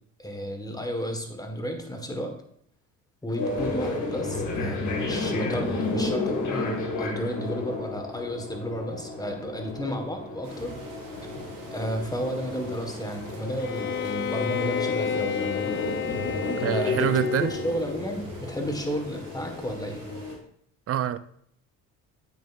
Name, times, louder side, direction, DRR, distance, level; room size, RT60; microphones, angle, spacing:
voice 1, 0.2-2.4 3.2-10.7 11.7-15.7 16.7-20.0, equal, 10° left, 4 dB, 1.4 m, -32 dB
sound 1, 3.4-20.4, left 3 dB, 60° left, 2.1 m, -32 dB
sound 2, 10.4-20.4, right 3 dB, 70° right, 2.6 m, -47 dB
Bowed string instrument, 13.6-18.0, left 8 dB, 35° left, 0.5 m, -31 dB
voice 2, 16.6-17.5 20.9-21.2, right 10 dB, 45° right, 14 dB, 0.5 m, -25 dB
8.7 x 6.7 x 2.5 m, 0.65 s
supercardioid pair, 75°, 34 cm